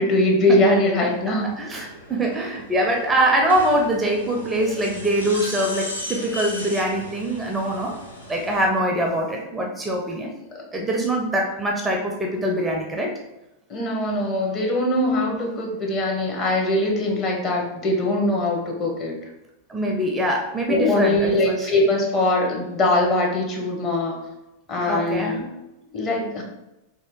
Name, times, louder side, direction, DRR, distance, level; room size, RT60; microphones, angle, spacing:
voice 1, 0.0-1.6 10.5-10.6 13.7-19.1 20.7-24.2 24.7-25.4 25.9-26.4, left 1 dB, 30° left, -1 dB, 0.9 m, -22 dB
sound 1, 1.0-8.7, left 1 dB, 85° left, 0.7 m, -37 dB
voice 2, 1.3-8.0 8.3-10.3 10.7-13.1 19.7-21.7 24.8-25.4, right 1 dB, 10° right, 1 dB, 0.5 m, -23 dB
3.4 x 2.5 x 3.6 m, 0.94 s
figure-of-eight pair, 90°, 0 cm